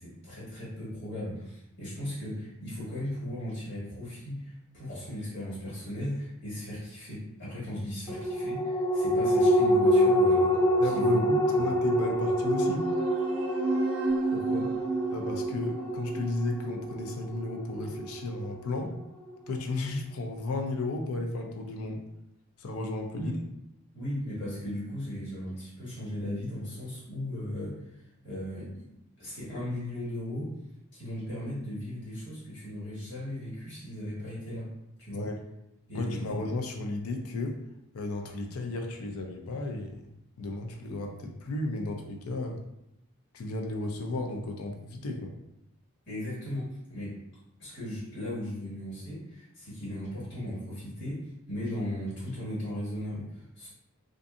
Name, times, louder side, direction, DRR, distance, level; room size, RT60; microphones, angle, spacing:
voice 1, 0.0-10.6 10.8-11.2 11.6-11.7 14.3-14.7 23.1-23.3 23.9-28.9 29.2-30.5 30.9-34.7 35.0-35.3 35.9-36.3 46.0-47.1 47.6-53.7, left 1 dB, 55° left, -8 dB, 1.5 m, -37 dB
sound 1, 8.1-18.9 19.3-19.4, equal, 10° left, 0.3 m, -26 dB
voice 2, 10.8-12.9 15.1-18.9 19.5-22.0 22.6-23.3 35.1-35.4 35.9-37.6 37.9-40.1 40.4-42.6 43.3-45.3, left 2 dB, 90° left, 3 dB, 0.5 m, -34 dB
sound 2, 12.4-17.4, right 3 dB, 75° right, 0.5 m, -33 dB
2.5 x 2.5 x 2.4 m, 0.82 s
head